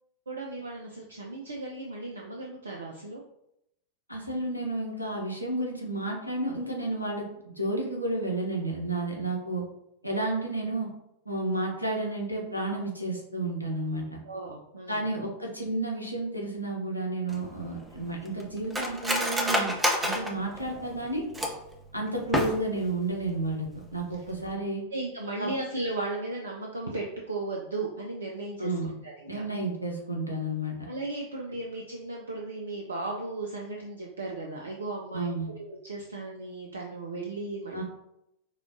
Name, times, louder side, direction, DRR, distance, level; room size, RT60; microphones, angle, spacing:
voice 1, 0.3-3.2 14.2-15.1 24.9-29.4 30.8-35.3 35.6-37.8, right 2 dB, 75° right, 0 dB, 0.4 m, -36 dB
voice 2, 4.1-7.2 7.6-9.6 10.0-10.9 11.2-14.2 14.9-19.7 20.0-21.2 21.9-24.8 25.4-25.5 28.6-28.9 29.3-30.8 35.1-35.5 37.7-37.8, right 2 dB, 90° right, -1 dB, 0.8 m, -31 dB
Cutlery silverware, 17.3-21.7 22.2-22.9 23.2-23.3 23.7-24.0 24.3-24.5, equal, 10° right, 0.6 m, -29 dB
4.9 x 2.3 x 2.5 m, 0.81 s
figure-of-eight pair, 90°, 0 cm